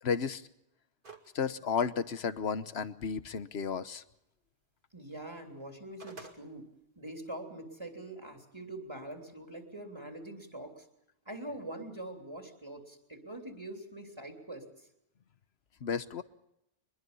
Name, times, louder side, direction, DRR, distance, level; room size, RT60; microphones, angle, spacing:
voice 1, 0.0-0.4 1.3-4.0 15.8-16.2, left 6 dB, 75° left, 13 dB, 1.3 m, -33 dB
sound 1, 1.0-1.4 1.8-1.9 5.6-6.4, right 3 dB, 50° right, 2.5 m, -48 dB
voice 2, 4.9-6.7 6.9-10.9 11.2-14.9, right 1 dB, 25° right, 3 dB, 3.3 m, -44 dB
24.0 x 22.0 x 5.5 m, 0.84 s
omnidirectional pair, 1.1 m